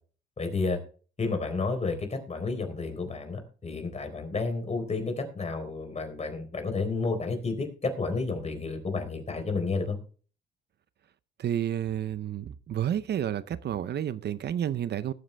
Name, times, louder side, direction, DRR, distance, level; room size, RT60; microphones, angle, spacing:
voice 1, 0.4-0.8 1.2-10.0, left 3 dB, 35° left, 3.9 m, -31 dB
voice 2, 11.4-15.1, right 10 dB, 55° right, 0.7 m, -30 dB
19.5 x 7.8 x 3.4 m
cardioid pair, 90°, 20 cm